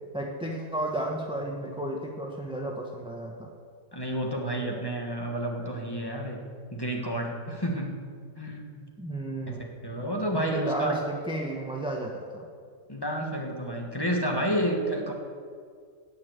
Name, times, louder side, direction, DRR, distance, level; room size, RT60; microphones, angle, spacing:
voice 1, 0.1-3.5 9.0-9.7 10.3-12.4, right 1 dB, 5° right, 0 dB, 1.0 m, -33 dB
voice 2, 3.9-6.4 6.7-7.9 8.4-8.9 9.5-11.0 12.9-15.1, right 1 dB, 15° left, 1 dB, 1.5 m, -30 dB
17.5 x 5.8 x 8.0 m, 2.2 s
omnidirectional pair, 1.5 m